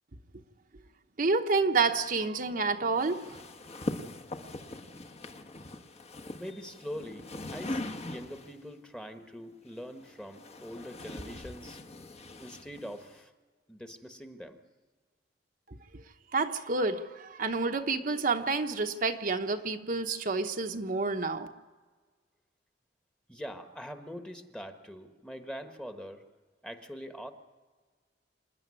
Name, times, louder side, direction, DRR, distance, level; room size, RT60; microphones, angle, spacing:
voice 1, 1.2-3.4 16.3-21.5, right 3 dB, 50° right, 4 dB, 1.0 m, -29 dB
sound 1, 3.0-8.6 9.7-13.2, left 1 dB, 35° left, 1.2 m, -41 dB
voice 2, 6.3-11.8 12.4-13.3 13.7-14.6 23.3-26.2 26.6-27.3, equal, 5° left, 6 dB, 1.2 m, -43 dB
26.5 x 10.5 x 9.7 m, 1.4 s
head